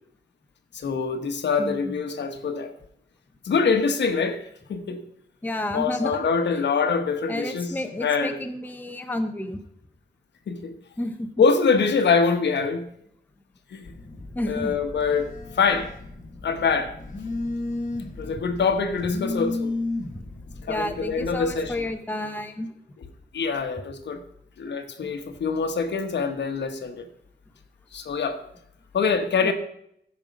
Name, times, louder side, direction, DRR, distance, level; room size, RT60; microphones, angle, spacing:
voice 1, 0.7-2.7 3.4-5.0 5.7-8.4 10.5-10.7 11.4-12.9 13.7-13.9 14.4-15.9 16.4-16.9 18.2-19.7 20.6-21.7 23.3-24.2 24.6-27.1 27.9-28.4 28.9-29.5, left 5 dB, 80° left, 1.1 m, -24 dB
voice 2, 1.6-2.0 5.4-6.2 7.3-9.6 11.0-11.3 11.7-11.8 14.3-14.8 20.7-22.7 25.0-25.1 29.4-29.5, left 1 dB, 10° left, 0.7 m, -31 dB
Telephone, 13.8-21.9, left 2 dB, 45° left, 1.2 m, -34 dB
14.0 x 5.4 x 5.1 m
wide cardioid pair, 180°, 18 cm